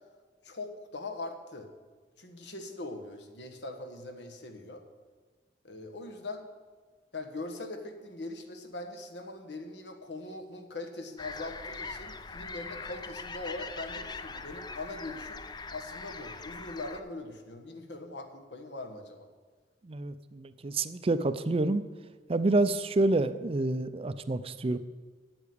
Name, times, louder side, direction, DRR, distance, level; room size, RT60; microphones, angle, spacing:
voice 1, 0.4-1.7 2.2-4.8 5.6-6.4 7.1-15.4 15.7-19.3, left 2 dB, 70° left, 6 dB, 1.4 m, -41 dB
sound 1, 11.2-17.0, left 4 dB, 25° left, 0.5 m, -42 dB
voice 2, 19.8-21.8 22.3-24.8, right 2 dB, 35° right, 13 dB, 0.5 m, -28 dB
8.4 x 8.1 x 8.6 m, 1.5 s
head